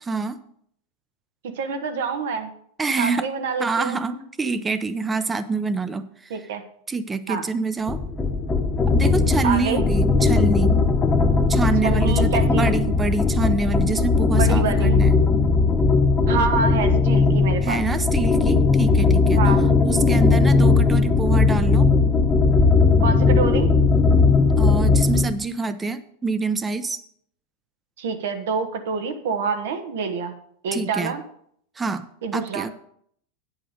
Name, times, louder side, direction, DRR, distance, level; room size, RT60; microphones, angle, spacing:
voice 1, 0.1-0.4 2.8-3.3 3.6-6.3 6.9-8.0 8.9-10.7 11.5-15.1 17.6-19.4 19.8-21.9 24.6-27.0 30.7-31.1 31.8-32.0 32.3-32.7, right 4 dB, 15° right, 13 dB, 0.6 m, -26 dB
voice 2, 1.4-2.5 3.0-4.0 6.3-6.6 7.3-7.4 9.4-9.8 11.8-12.7 14.3-15.0 16.3-17.8 19.4-19.7 23.0-23.7 28.0-30.4 30.6-31.2 32.2-32.7, right 5 dB, 80° right, 6 dB, 1.3 m, -26 dB
sound 1, 7.9-25.3, left 4 dB, 15° left, 1.0 m, -18 dB
8.9 x 8.0 x 5.1 m, 0.66 s
supercardioid pair, 140°, 0 cm